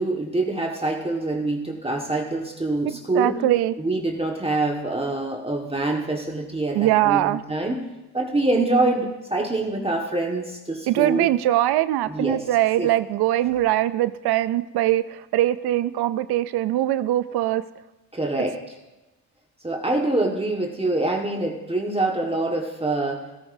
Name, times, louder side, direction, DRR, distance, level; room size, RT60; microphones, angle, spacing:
voice 1, 0.0-3.4 3.8-7.9 8.1-11.3 12.1-12.4 12.8-12.9 18.1-18.6 19.6-23.2, right 2 dB, 15° right, 0 dB, 1.6 m, -25 dB
voice 2, 3.1-3.7 6.7-7.4 10.9-17.6, right 14 dB, 75° right, 14 dB, 0.5 m, -22 dB
17.0 x 10.5 x 2.7 m, 1.0 s
supercardioid pair, 65°, 39 cm